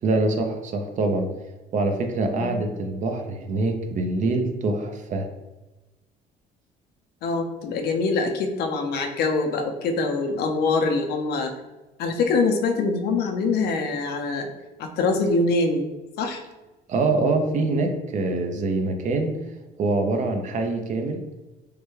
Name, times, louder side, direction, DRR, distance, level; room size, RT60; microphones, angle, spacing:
voice 1, 0.0-1.3 1.7-5.3 16.9-19.4 19.8-21.2, right 3 dB, 45° right, 5 dB, 0.5 m, -24 dB
voice 2, 7.2-11.5 12.0-14.5 14.8-15.8 16.2-16.4, left 3 dB, 70° left, 4 dB, 0.5 m, -24 dB
3.2 x 2.1 x 3.1 m, 1.1 s
cardioid pair, 110°, 17 cm